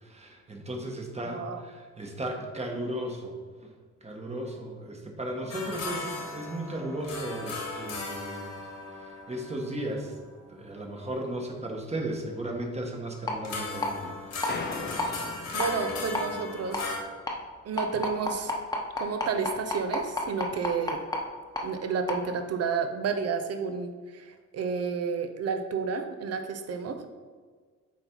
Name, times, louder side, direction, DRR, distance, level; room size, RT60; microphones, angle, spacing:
voice 1, 0.0-3.3 4.0-8.5 9.3-10.1 10.5-14.2, right 1 dB, 20° right, 2 dB, 1.4 m, -35 dB
voice 2, 1.2-1.6 15.5-16.9 17.6-18.5 19.0-21.0 21.6-27.1, right 5 dB, 55° right, 6 dB, 0.8 m, -31 dB
sound 1, 5.5-10.9 13.4-17.0, left 3 dB, 60° left, 1.8 m, -37 dB
sound 2, 13.3-13.4 13.8-13.9 14.4-14.5 15.0-15.1 15.6-15.7 16.1-16.2 16.7-16.8 17.3-17.4 17.8-21.2 21.6-21.7 22.1-22.2, left 2 dB, 15° left, 1.2 m, -29 dB
sound 3, 14.5-16.9, left 4 dB, 35° left, 0.8 m, -39 dB
7.4 x 4.1 x 4.5 m, 1.5 s
cardioid pair, 90°, 30 cm